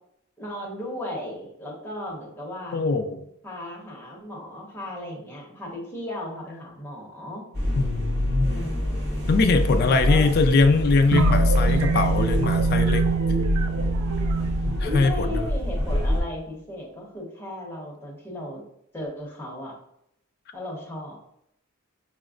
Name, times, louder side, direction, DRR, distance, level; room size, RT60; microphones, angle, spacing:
voice 1, 0.4-2.8 3.4-7.4 8.4-9.3 9.7-10.3 14.9-18.6 18.9-19.8 20.5-21.2, left 1 dB, 10° left, -4 dB, 0.9 m, -36 dB
voice 2, 2.7-3.2 7.8-8.5 9.3-13.1 14.7-15.5, left 3 dB, 50° left, 7 dB, 0.3 m, -22 dB
sound 1, 7.5-16.2, left 1 dB, 55° right, 1.0 m, -26 dB
sound 2, 11.1-15.8, right 3 dB, 80° right, 0.3 m, -24 dB
5.0 x 2.1 x 2.4 m, 0.75 s
head